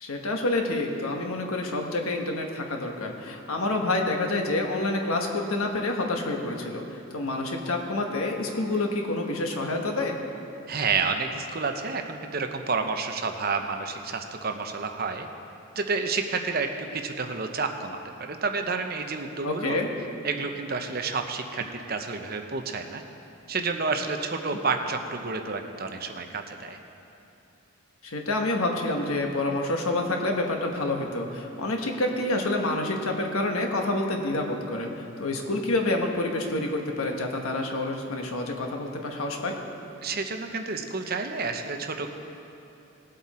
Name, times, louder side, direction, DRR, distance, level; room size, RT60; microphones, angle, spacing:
voice 1, 0.0-10.2 19.4-19.9 24.5-24.6 28.0-39.6, left 2 dB, 90° left, 2 dB, 1.4 m, -28 dB
voice 2, 10.7-15.3 15.8-19.8 20.2-23.0 23.5-26.8 40.0-42.1, right 4 dB, 45° right, 5 dB, 0.8 m, -30 dB
18.5 x 7.8 x 4.3 m, 2.8 s
head